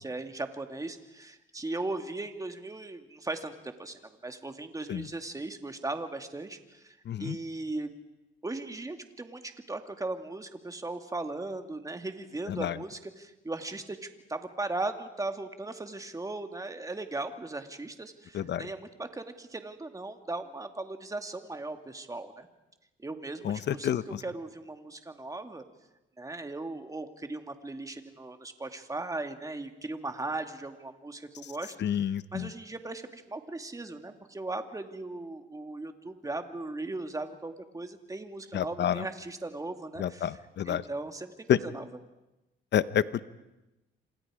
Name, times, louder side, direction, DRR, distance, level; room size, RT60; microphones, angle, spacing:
voice 1, 0.0-7.9 8.4-22.5 23.0-25.6 26.2-41.9, right 2 dB, 15° right, 6 dB, 2.2 m, -38 dB
voice 2, 7.1-7.4 12.5-12.8 18.3-18.7 23.4-24.2 31.8-32.5 38.5-39.0 40.0-40.8 41.5-41.6 42.7-43.2, left 10 dB, 60° left, 15 dB, 1.0 m, -29 dB
27.5 x 26.5 x 5.0 m, 0.97 s
cardioid pair, 90°, 20 cm